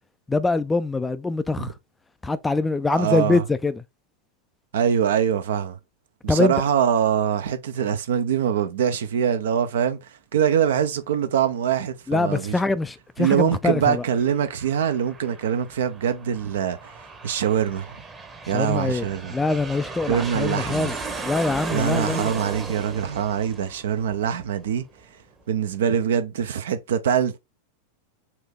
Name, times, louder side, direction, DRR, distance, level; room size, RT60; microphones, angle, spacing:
voice 1, 0.3-1.7 2.2-3.8 6.3-6.5 12.1-14.0 18.4-21.0 21.2-22.3, left 3 dB, 10° left, 0.3 m, -24 dB
voice 2, 2.9-3.4 4.7-5.8 6.2-10.0 10.3-12.6 13.2-16.9 17.2-18.0 18.5-19.3 20.1-20.9 21.7-24.8 25.5-27.4, right 8 dB, 60° right, 0.6 m, -23 dB
Aircraft, 14.0-25.1, right 3 dB, 20° right, 0.9 m, -36 dB
4.4 x 2.7 x 3.6 m
figure-of-eight pair, 90°, 0 cm